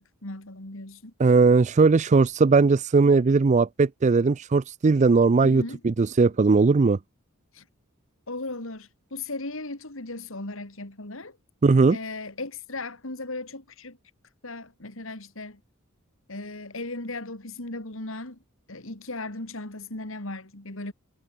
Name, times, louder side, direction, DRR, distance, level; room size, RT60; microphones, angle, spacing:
voice 1, 0.0-1.1 5.4-5.8 7.5-7.6 8.3-11.4 11.9-14.0 14.4-15.6 16.3-18.4 18.7-20.9, left 2 dB, 65° left, 3.2 m, -37 dB
voice 2, 1.2-7.0 11.6-12.0, right 4 dB, 35° right, 0.4 m, -19 dB
head